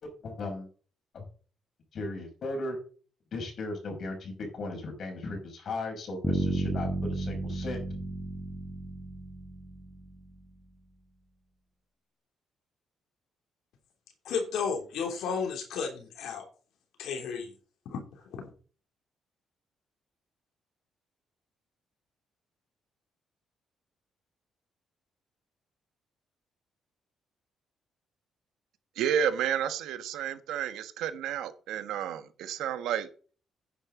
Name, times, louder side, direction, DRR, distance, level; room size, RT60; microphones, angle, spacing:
voice 1, 0.0-0.7 1.1-1.2 1.9-2.8 3.3-7.8, left 2 dB, 55° left, 6.0 m, -37 dB
Bass guitar, 6.2-10.2, right 2 dB, 15° left, 3.4 m, -32 dB
voice 2, 14.2-16.5 17.0-17.5 17.8-18.5, left 6 dB, 80° left, 3.0 m, -33 dB
voice 3, 29.0-33.1, right 9 dB, 85° right, 1.3 m, -31 dB
10.5 x 9.8 x 3.9 m
cardioid pair, 90°, 0 cm